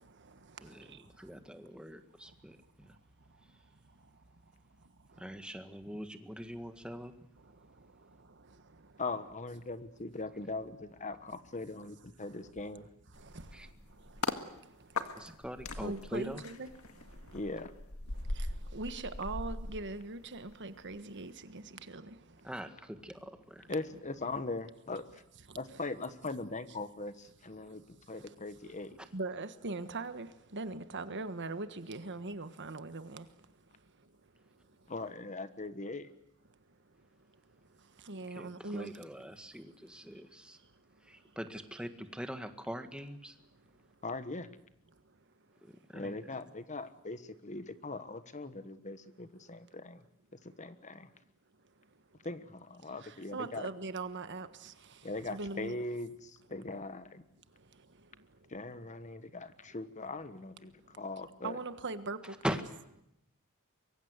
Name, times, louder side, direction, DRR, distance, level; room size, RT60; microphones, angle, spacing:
voice 1, 0.0-1.0 8.5-8.6 13.2-13.7 14.0-14.2 15.8-16.7 17.1-17.2 18.3-22.2 25.5-25.8 29.1-33.3 38.0-38.9 53.0-55.8 61.4-62.6, right 3 dB, 55° right, 1.5 m, -41 dB
voice 2, 1.2-2.9 5.2-7.1 13.5-13.7 15.1-16.4 22.4-23.7 38.3-40.6 41.1-43.3 45.6-46.2 62.4-62.6, equal, 5° right, 1.8 m, -42 dB
voice 3, 9.0-12.9 17.3-17.7 23.7-25.2 25.5-28.9 34.9-36.1 44.0-44.5 45.9-50.0 50.4-51.1 52.2-53.7 55.0-57.2 58.5-61.6, left 3 dB, 35° left, 1.3 m, -40 dB
sound 1, 13.1-14.4 15.0-20.5 20.9-21.1, left 2 dB, 70° left, 1.9 m, -40 dB
24.5 x 23.5 x 8.2 m
head